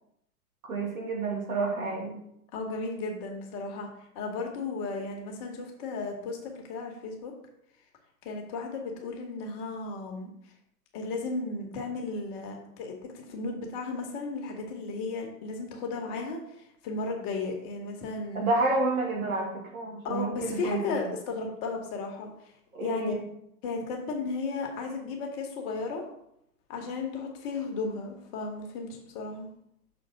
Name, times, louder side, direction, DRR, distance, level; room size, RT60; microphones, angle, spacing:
voice 1, 0.6-2.2 18.3-21.0 22.7-23.2, right 3 dB, 65° right, 0 dB, 2.3 m, -29 dB
voice 2, 2.5-3.9 4.1-7.3 8.2-10.3 10.9-16.4 16.8-18.4 20.0-22.3 22.8-23.1 23.6-26.0 26.7-29.5, left 3 dB, 35° left, 2 dB, 1.4 m, -34 dB
6.4 x 3.8 x 6.0 m, 0.75 s
figure-of-eight pair, 105°, 45 cm